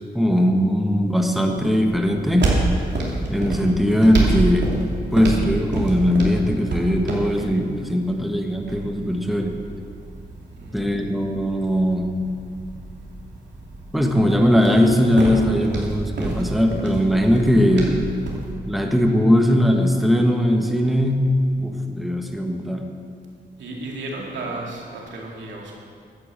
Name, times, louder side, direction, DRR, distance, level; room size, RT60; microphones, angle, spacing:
voice 1, 0.1-2.5 3.3-4.7 5.1-9.5 10.7-12.1 13.9-18.0 18.7-22.8, equal, ahead, 2 dB, 1.6 m, -19 dB
sound 1, 1.5-18.5, right 2 dB, 70° right, 3.0 m, -29 dB
voice 2, 10.5-11.1 23.6-25.8, right 2 dB, 90° right, -2 dB, 2.5 m, -34 dB
11.5 x 9.1 x 7.6 m, 2.3 s
cardioid pair, 65°, 19 cm